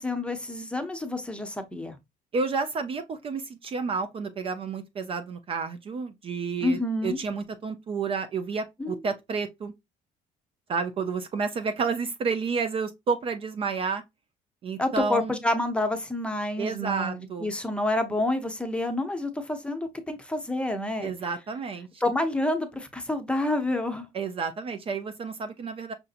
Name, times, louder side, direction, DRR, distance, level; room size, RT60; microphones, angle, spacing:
voice 1, 0.0-2.0 6.6-7.2 8.8-9.0 14.8-21.1 22.0-24.1, left 1 dB, 5° left, 0.7 m, -28 dB
voice 2, 2.3-9.7 10.7-14.0 14.6-15.4 16.6-17.5 21.0-21.9 24.1-25.9, right 5 dB, 35° right, 0.4 m, -30 dB
5.6 x 2.7 x 2.4 m
cardioid pair, 135°, 16 cm